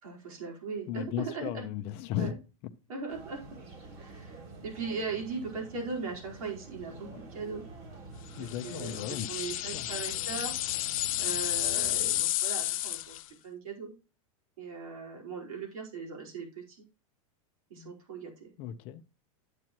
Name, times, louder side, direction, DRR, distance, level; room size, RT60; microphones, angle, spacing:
voice 1, 0.0-1.7 2.1-2.4 2.9-3.4 4.0-7.6 8.6-13.2 13.4-13.9 14.6-16.8 17.7-18.5, right 4 dB, 80° right, 4.4 m, -39 dB
voice 2, 0.9-2.3 8.4-9.9 17.7-17.9 18.6-19.0, left 10 dB, 35° left, 0.7 m, -36 dB
sound 1, 3.1-12.2, right 3 dB, 40° right, 2.4 m, -47 dB
sound 2, 8.5-13.3, left 16 dB, 75° left, 0.5 m, -31 dB
9.3 x 8.7 x 3.0 m
supercardioid pair, 170°, 18 cm